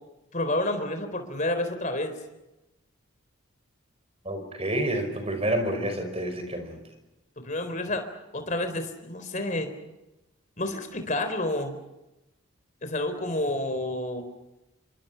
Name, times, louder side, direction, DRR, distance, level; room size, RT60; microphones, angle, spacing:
voice 1, 0.3-2.1 7.4-8.1 8.3-9.7 10.6-11.8 12.8-14.2, left 1 dB, 35° left, 8 dB, 3.9 m, -29 dB
voice 2, 4.3-6.8, right 1 dB, 30° right, 6 dB, 5.4 m, -29 dB
28.0 x 24.5 x 5.8 m, 0.96 s
head